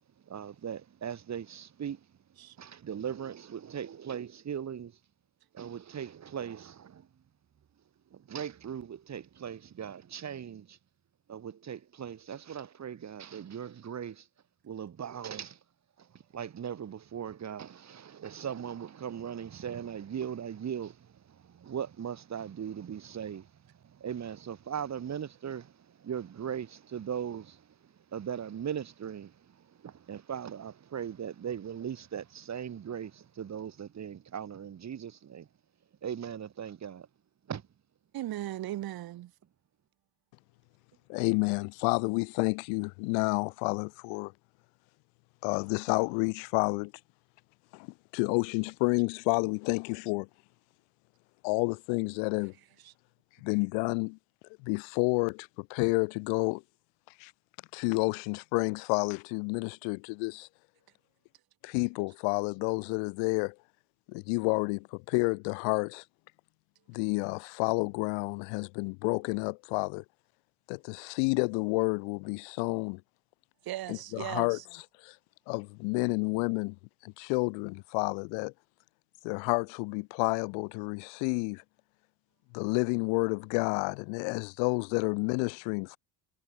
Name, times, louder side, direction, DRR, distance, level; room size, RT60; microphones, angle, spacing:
voice 1, 0.3-2.0 2.6-4.9 5.5-7.1 8.1-10.8 11.3-14.2 14.6-15.6 16.0-23.5 23.9-25.7 26.0-27.6 28.1-29.3 29.8-35.5 36.0-37.1 37.5-37.6, right 8 dB, 35° right, 3.0 m, -39 dB
voice 2, 38.1-39.3 73.7-74.5, right 14 dB, 50° right, 2.0 m, -37 dB
voice 3, 41.1-44.3 45.4-46.9 47.7-47.9 48.1-50.3 51.4-52.5 53.4-54.2 54.6-56.6 57.2-57.3 57.7-60.5 61.6-63.5 64.1-66.0 66.9-70.0 70.7-73.0 73.9-75.2 75.5-76.8 77.0-78.5 79.2-81.6 82.5-86.0, left 37 dB, 80° left, 3.5 m, -30 dB
supercardioid pair, 95°, 45 cm